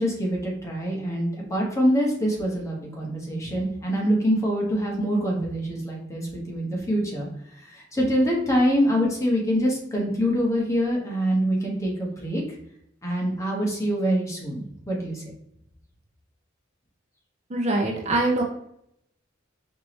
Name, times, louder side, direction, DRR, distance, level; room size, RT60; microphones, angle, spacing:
voice 1, 0.0-12.6 13.0-15.2, equal, 15° left, -2 dB, 1.1 m, -25 dB
voice 2, 17.5-18.4, right 2 dB, 35° right, 0 dB, 0.6 m, -23 dB
4.6 x 3.0 x 3.1 m, 0.74 s
head